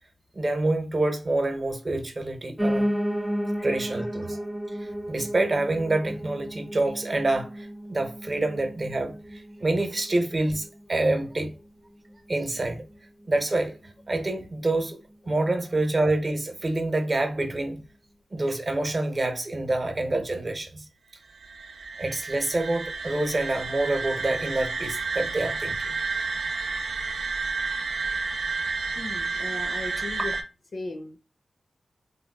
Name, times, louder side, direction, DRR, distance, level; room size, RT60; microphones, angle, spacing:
voice 1, 0.3-2.9 3.6-4.4 5.1-11.5 12.3-12.8 13.3-13.8 14.1-15.0 15.3-17.8 18.3-20.8 22.0-25.7, right 2 dB, 40° right, 0.7 m, -27 dB
Piano, 2.6-11.7 12.1-13.3 13.5-13.6 13.9-14.0 14.2-14.3 14.8-14.9, equal, 5° right, 0.3 m, -33 dB
sound 1, 21.3-30.4, right 4 dB, 85° right, 0.6 m, -31 dB
voice 2, 29.0-30.4 30.7-31.2, left 2 dB, 55° left, 0.4 m, -36 dB
3.4 x 2.3 x 2.3 m
wide cardioid pair, 75°, 0 cm